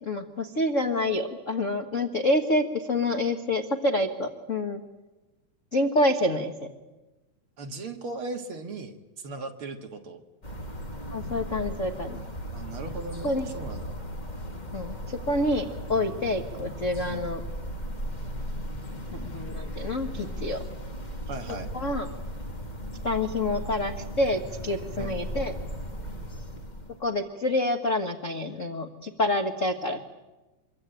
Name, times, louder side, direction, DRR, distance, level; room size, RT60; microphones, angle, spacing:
voice 1, 0.0-4.8 5.7-6.7 11.1-12.2 13.2-13.5 14.7-17.4 19.1-20.6 21.7-22.1 23.0-25.5 27.0-30.0, left 1 dB, 60° left, 6 dB, 0.7 m, -27 dB
voice 2, 7.6-10.2 12.5-14.0 17.0-17.3 21.3-21.7 25.0-25.2, right 3 dB, 50° right, 5 dB, 2.1 m, -38 dB
sound 1, 10.4-27.1, equal, 20° left, 1.3 m, -37 dB
25.5 x 22.5 x 9.0 m, 1.1 s
omnidirectional pair, 3.6 m